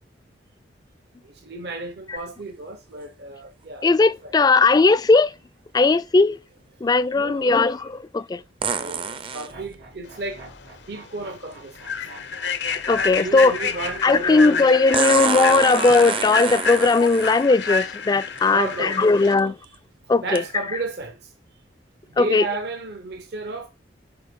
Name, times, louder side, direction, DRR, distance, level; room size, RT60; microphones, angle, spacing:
voice 1, 1.4-3.9 4.2-4.3 7.1-7.7 8.7-10.4 10.9-11.8 13.2-15.3 18.5-19.7 20.1-21.2 22.1-23.7, right 3 dB, 65° right, 0.8 m, -33 dB
sound 1, 2.2-2.3 8.6-9.5 11.5-11.6 14.9-17.4 18.4-18.5 19.1-19.4 20.4-20.5, right 5 dB, 30° right, 0.5 m, -26 dB
voice 2, 3.8-5.3 5.7-6.4 6.8-8.4 12.9-13.5 14.0-19.5 20.1-20.4 22.2-22.4, left 3 dB, 20° left, 0.3 m, -18 dB
sound 2, 9.5-14.6, right 2 dB, 85° right, 2.6 m, -46 dB
Human voice / Train, 10.5-10.6 11.1-11.2 11.8-19.3, left 5 dB, 75° left, 0.7 m, -29 dB
6.5 x 5.0 x 3.6 m
head